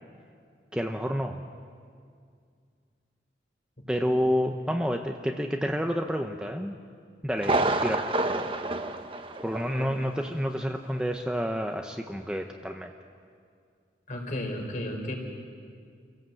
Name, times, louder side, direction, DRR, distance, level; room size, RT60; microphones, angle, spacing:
voice 1, 0.7-1.4 3.9-6.8 7.2-8.1 9.4-12.9, equal, 5° right, 3 dB, 0.8 m, -29 dB
Thunder, 7.4-10.0 10.2-10.3 10.9-11.0, right 2 dB, 30° right, 1.1 m, -28 dB
voice 2, 14.1-15.1, left 1 dB, 45° left, 2 dB, 3.8 m, -34 dB
29.0 x 17.5 x 7.9 m, 2.2 s
head